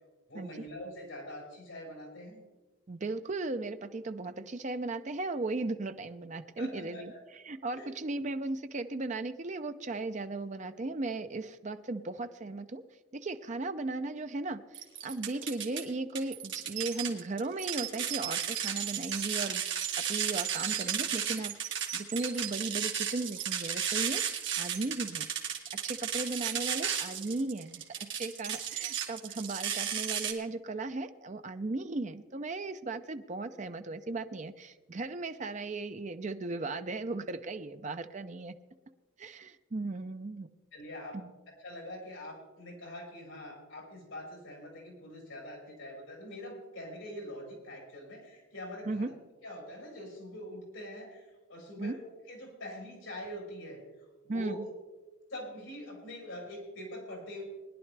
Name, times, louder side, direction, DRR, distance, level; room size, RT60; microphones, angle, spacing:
voice 1, 0.3-2.4 6.6-7.2 7.7-7.9 40.7-41.2 41.5-49.2 49.4-54.7 55.3-57.4, left 1 dB, 75° left, -1 dB, 5.1 m, -44 dB
voice 2, 2.9-7.1 7.5-12.8 13.1-14.6 15.0-25.3 25.7-38.6 39.2-40.5 41.1-41.3 48.9-49.1 51.8-52.0 54.3-54.7, right 2 dB, 35° right, 9 dB, 0.5 m, -36 dB
sound 1, 14.7-15.8 16.1-30.3, right 8 dB, 60° right, 1.8 m, -34 dB
20.0 x 11.0 x 3.3 m, 1.2 s
head